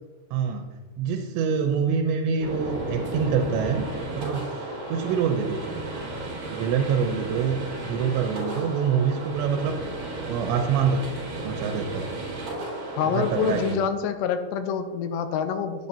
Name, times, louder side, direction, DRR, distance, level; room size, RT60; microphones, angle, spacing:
voice 1, 0.3-0.7 1.0-3.9 4.1-5.8 6.5-9.8 10.3-11.1 11.4-12.1 13.1-13.8, right 6 dB, 90° right, 3 dB, 3.1 m, -26 dB
sound 1, 2.4-13.7, right 2 dB, 50° right, 4.6 m, -33 dB
voice 2, 13.0-15.9, left 7 dB, 85° left, 8 dB, 2.8 m, -26 dB
15.0 x 9.5 x 2.9 m, 1.3 s
omnidirectional pair, 5.0 m